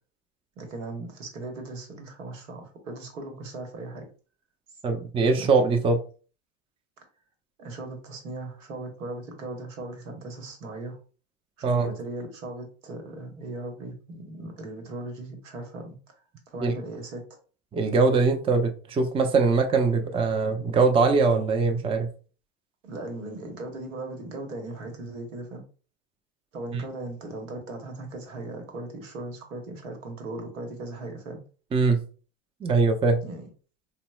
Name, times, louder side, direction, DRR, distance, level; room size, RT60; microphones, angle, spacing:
voice 1, 0.6-4.1 5.4-5.5 7.6-11.0 11.6-16.0 16.5-17.2 22.8-25.6 26.5-31.4 33.2-33.5, right 2 dB, 85° right, 1.0 m, -38 dB
voice 2, 4.8-6.0 11.6-11.9 16.6-16.7 17.7-22.1 31.7-32.0 32.6-33.2, right 4 dB, 15° right, 0.4 m, -22 dB
4.0 x 2.1 x 2.3 m
hypercardioid pair, 90°, 37 cm